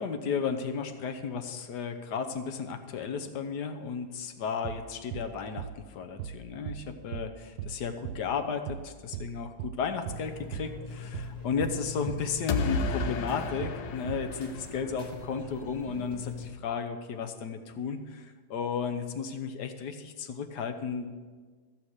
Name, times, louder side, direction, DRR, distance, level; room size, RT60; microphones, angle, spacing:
voice 1, 0.0-21.1, left 6 dB, 65° left, 7 dB, 1.5 m, -34 dB
sound 1, 4.6-4.9 5.1-5.3 5.6-5.8 6.2-6.4 6.7-6.9 7.1-7.3 7.6-7.8 8.0-8.3 8.7-8.9 9.1-9.3 9.6-9.8 10.1-10.3 10.5-10.7 11.1-11.3 11.6-11.8 12.1-12.3 12.5-12.7 13.0-13.2 13.6-13.8 14.1-14.3, right 10 dB, 80° right, 1.3 m, -38 dB
sound 2, 10.0-16.5, left 4 dB, 25° left, 1.2 m, -43 dB
sound 3, 12.5-15.4, left 4 dB, 80° left, 1.4 m, -32 dB
14.0 x 7.3 x 6.5 m, 1.5 s
omnidirectional pair, 2.0 m